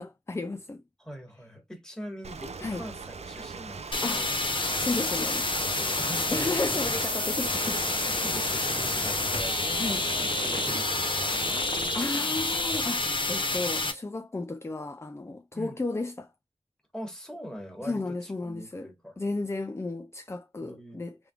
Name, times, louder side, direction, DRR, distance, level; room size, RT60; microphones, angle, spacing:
voice 1, 0.0-0.8 2.6-2.9 3.9-4.3 4.8-5.5 6.3-7.8 9.8-10.0 12.0-16.3 17.8-18.9 19.2-21.2, left 2 dB, 25° left, 0.4 m, -33 dB
voice 2, 1.0-4.4 5.7-6.8 8.2-12.2 15.5-15.8 16.9-19.2 20.6-21.0, equal, 5° left, 1.5 m, -43 dB
Ocean, 2.2-12.1, right 5 dB, 75° right, 0.5 m, -39 dB
sound 1, 3.9-13.9, left 2 dB, 50° left, 0.9 m, -29 dB
sound 2, 6.3-7.2 8.3-9.7, left 2 dB, 65° left, 1.6 m, -44 dB
3.4 x 3.4 x 2.3 m
wide cardioid pair, 70°, 11 cm